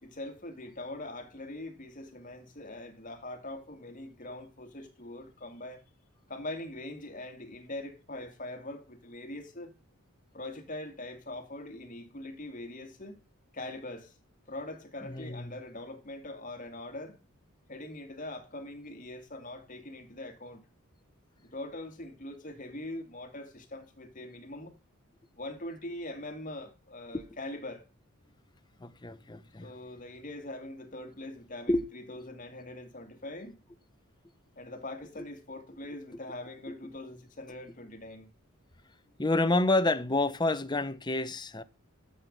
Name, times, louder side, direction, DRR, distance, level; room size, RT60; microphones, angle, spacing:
voice 1, 0.0-5.8 6.3-9.7 10.3-13.2 13.5-14.2 14.5-17.2 17.7-20.7 21.4-24.7 25.3-27.8 29.6-33.6 34.6-38.3, left 1 dB, 35° left, 2.2 m, -42 dB
voice 2, 15.0-15.6 27.1-27.2 28.8-29.7 31.7-31.9 35.2-35.3 39.2-41.6, left 2 dB, 20° left, 0.7 m, -29 dB
13.0 x 8.0 x 5.3 m
head